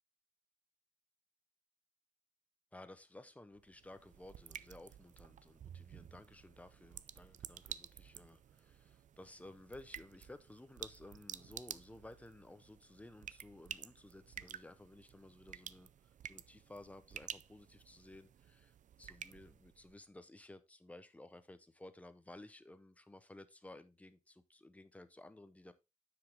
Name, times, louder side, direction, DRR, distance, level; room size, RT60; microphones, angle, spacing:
voice 1, 2.7-15.9 16.2-25.7, left 1 dB, 10° left, 0.7 m, -56 dB
sound 1, 3.5-20.0, right 9 dB, 75° right, 0.4 m, -52 dB
9.4 x 5.1 x 3.4 m
wide cardioid pair, 160°, 13 cm